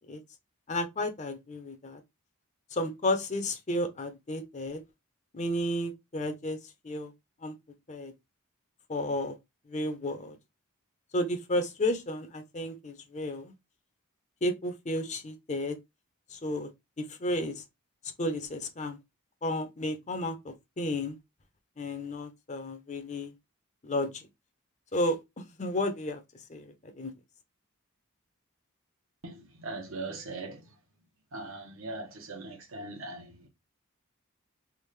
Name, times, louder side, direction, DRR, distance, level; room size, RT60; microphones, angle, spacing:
voice 1, 0.7-2.0 2.7-4.8 5.3-6.6 6.8-7.1 7.4-7.5 7.9-8.1 8.9-9.3 9.7-10.4 11.1-13.5 14.4-15.8 16.3-16.7 17.0-17.6 18.2-19.0 19.4-21.2 21.8-23.3 23.8-24.3 24.9-25.2 25.6-26.2 26.5-26.7 27.0-27.1, left 1 dB, 30° left, 0.6 m, -32 dB
voice 2, 29.2-30.7 31.3-33.5, right 2 dB, 65° right, 0.9 m, -40 dB
3.5 x 2.5 x 3.2 m
head